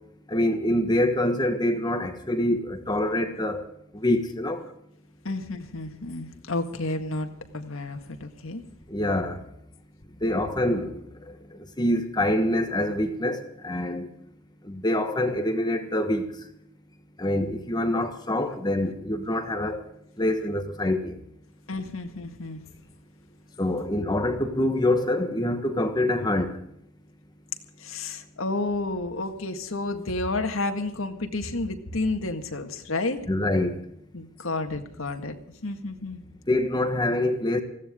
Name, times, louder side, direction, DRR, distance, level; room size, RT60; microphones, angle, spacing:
voice 1, 0.3-3.6 3.9-4.6 8.9-9.4 10.2-10.9 11.8-14.1 14.7-16.2 17.2-19.8 20.2-21.1 23.6-26.6 33.3-33.7 36.5-37.6, left 1 dB, 20° left, 1.4 m, -25 dB
voice 2, 5.2-8.6 21.7-22.6 27.8-33.2 34.1-35.4 35.6-36.2, left 2 dB, 80° left, 1.9 m, -31 dB
20.5 x 16.0 x 3.7 m
head